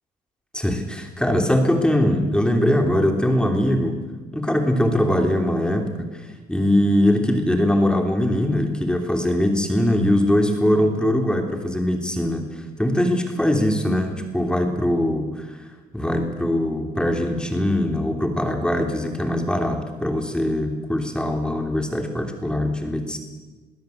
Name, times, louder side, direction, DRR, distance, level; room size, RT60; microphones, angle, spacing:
voice 1, 0.5-4.0 4.3-6.1 6.5-12.5 12.8-15.5 15.9-23.2, left 1 dB, 5° left, 4 dB, 3.2 m, -21 dB
22.5 x 16.0 x 8.0 m, 1.3 s
cardioid pair, 110°, 17 cm